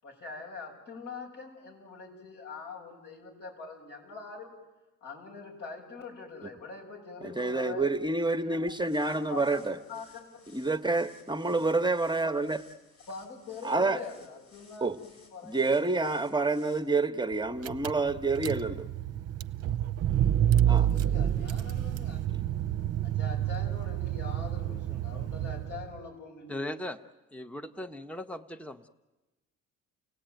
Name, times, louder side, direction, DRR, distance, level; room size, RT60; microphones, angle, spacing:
voice 1, 0.0-4.6 5.0-7.9 8.4-8.6 9.1-9.6 9.9-10.5 11.4-11.6 13.1-16.1 20.7-22.3 23.0-26.8, left 4 dB, 85° left, 0 dB, 7.4 m, -44 dB
voice 2, 7.2-9.8 10.5-12.6 13.6-14.0 14.8-15.0 15.4-18.9 20.7-20.9, right 3 dB, 15° right, 7 dB, 1.1 m, -28 dB
sound 1, 8.7-16.8, left 4 dB, 60° left, 6.7 m, -60 dB
Car / Engine, 17.3-17.4 17.6-26.0, right 11 dB, 55° right, 0.8 m, -29 dB
voice 3, 26.5-27.0 27.3-28.9, left 1 dB, 5° left, 10 dB, 1.0 m, -38 dB
30.0 x 17.5 x 9.2 m, 1.1 s
cardioid pair, 90°, 30 cm